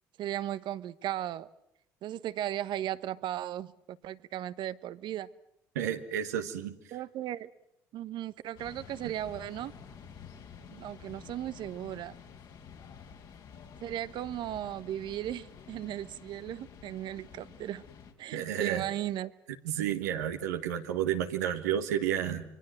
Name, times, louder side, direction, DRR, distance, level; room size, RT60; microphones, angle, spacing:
voice 1, 0.2-1.5 2.0-5.3 6.9-7.5 7.9-9.7 10.7-12.1 13.8-17.8 18.2-19.3, right 12 dB, 60° right, 15 dB, 1.0 m, -36 dB
voice 2, 5.7-6.8 9.0-9.1 18.3-18.8 19.6-22.4, right 10 dB, 85° right, 5 dB, 1.5 m, -31 dB
sound 1, 8.6-18.1, left 7 dB, 60° left, 4.0 m, -50 dB
27.0 x 23.0 x 7.7 m, 0.79 s
hypercardioid pair, 65°, 9 cm